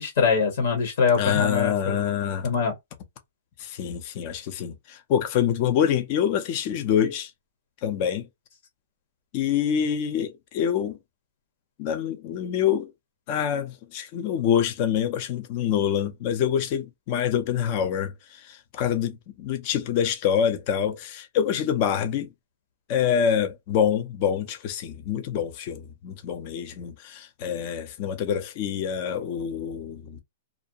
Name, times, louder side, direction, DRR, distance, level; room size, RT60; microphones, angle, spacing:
voice 1, 0.0-1.9 2.4-2.7, left 5 dB, 60° left, 1.1 m, -23 dB
voice 2, 1.2-2.5 3.6-7.3 7.8-8.3 9.3-11.0 11.8-12.9 13.3-22.3 22.9-30.2, left 8 dB, 40° left, 0.6 m, -26 dB
2.5 x 2.1 x 2.7 m
hypercardioid pair, 155°, 0 cm